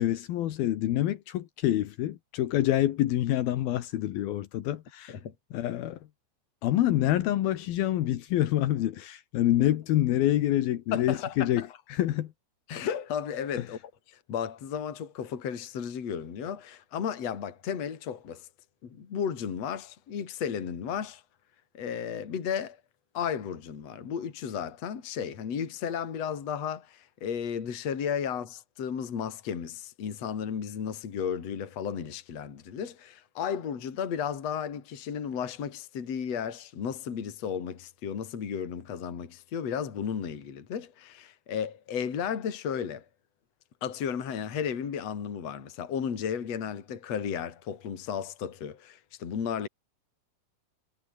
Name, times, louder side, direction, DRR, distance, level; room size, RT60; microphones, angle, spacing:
voice 1, 0.0-5.1 5.5-6.0 6.6-12.3, left 13 dB, 75° left, 3.1 m, -27 dB
voice 2, 10.9-11.7 12.7-13.8 14.1-18.5 18.8-21.2 21.7-22.8 23.1-43.1 43.8-49.7, left 7 dB, 45° left, 3.7 m, -34 dB
omnidirectional pair, 4.4 m